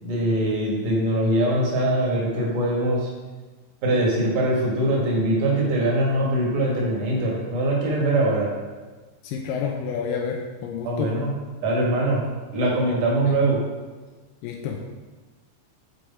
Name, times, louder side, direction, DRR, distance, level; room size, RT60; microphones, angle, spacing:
voice 1, 0.0-3.1 3.8-8.5 10.8-11.3 11.6-12.2 12.5-13.6, right 1 dB, 70° right, -4 dB, 3.1 m, -22 dB
voice 2, 9.2-11.1 13.3-13.4 14.4-14.9, left 6 dB, 90° left, 1 dB, 2.3 m, -29 dB
7.7 x 4.7 x 4.2 m, 1.3 s
omnidirectional pair, 3.9 m